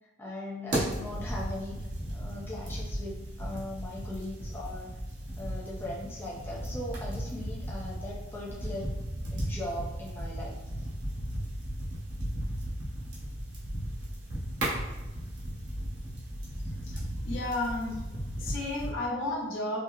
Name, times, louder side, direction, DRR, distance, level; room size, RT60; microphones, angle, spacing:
voice 1, 0.2-1.7 2.1-4.9 5.4-8.9 9.3-10.6 18.4-18.5, left 1 dB, 10° left, -5 dB, 0.5 m, -39 dB
sound 1, 0.7-18.9, right 1 dB, 75° right, 1.0 m, -36 dB
voice 2, 17.2-18.0 18.4-19.8, left 2 dB, 85° left, -2 dB, 0.7 m, -32 dB
4.2 x 2.0 x 2.4 m, 1.1 s
head